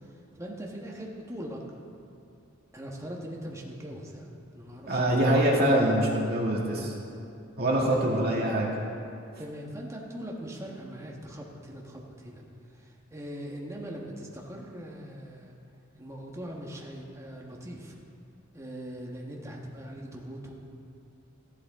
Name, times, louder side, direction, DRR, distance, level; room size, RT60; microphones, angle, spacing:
voice 1, 0.3-1.6 2.7-4.3 4.5-5.4 6.7-7.0 7.9-8.2 9.4-12.4 12.8-15.5 16.0-18.0 18.5-20.5, equal, 15° right, -1 dB, 1.4 m, -41 dB
voice 2, 4.9-6.9 7.6-8.7, right 1 dB, 50° right, -3 dB, 2.1 m, -24 dB
14.0 x 11.5 x 3.7 m, 2.7 s
head